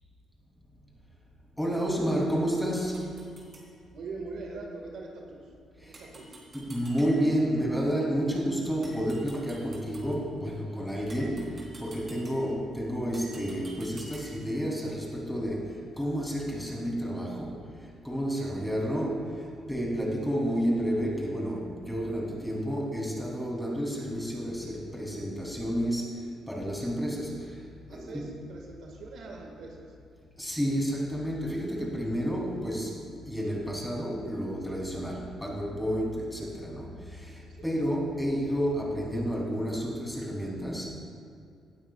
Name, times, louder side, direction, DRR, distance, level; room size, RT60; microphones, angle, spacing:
voice 1, 1.6-3.1 5.8-6.0 6.5-28.3 30.4-41.0, equal, 5° left, -3 dB, 3.2 m, -31 dB
sound 1, 2.7-3.7 5.9-7.5 8.8-10.2 11.1-12.6 13.1-14.5, right 2 dB, 35° right, 3.2 m, -50 dB
voice 2, 3.9-5.5 5.8-6.3 18.3-18.7 27.9-29.8 37.5-37.8, right 3 dB, 75° right, 0 dB, 1.9 m, -42 dB
18.0 x 12.0 x 2.4 m, 2.3 s
cardioid pair, 90°, 0 cm